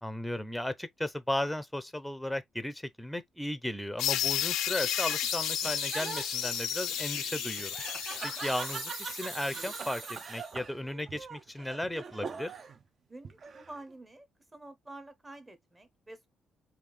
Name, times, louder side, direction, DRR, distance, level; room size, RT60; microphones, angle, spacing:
voice 1, 0.0-7.8 8.2-12.5, left 1 dB, 5° left, 0.6 m, -35 dB
sound 1, 4.0-9.6, left 12 dB, 90° left, 0.4 m, -33 dB
Laughter, 4.4-12.8 13.2-13.9, right 5 dB, 45° right, 0.4 m, -44 dB
sound 2, 4.9-10.6, right 3 dB, 65° right, 1.6 m, -42 dB
voice 2, 13.1-16.3, right 2 dB, 20° right, 0.9 m, -49 dB
3.5 x 2.4 x 3.1 m
cardioid pair, 90°, 0 cm